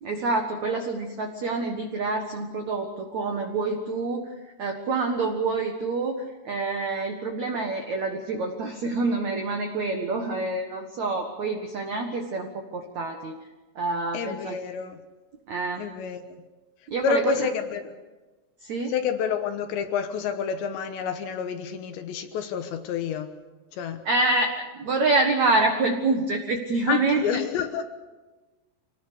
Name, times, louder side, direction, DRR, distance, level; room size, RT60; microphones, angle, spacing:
voice 1, 0.0-4.3 4.6-13.4 13.7-14.6 15.5-15.8 16.9-17.5 18.6-18.9 24.0-27.4, right 3 dB, 90° right, 4 dB, 1.5 m, -27 dB
voice 2, 14.1-15.0 15.8-16.4 17.0-17.9 18.9-23.3 23.7-24.0 26.9-27.8, left 7 dB, 70° left, 7 dB, 3.0 m, -29 dB
26.5 x 19.5 x 6.8 m, 1.2 s
omnidirectional pair, 5.9 m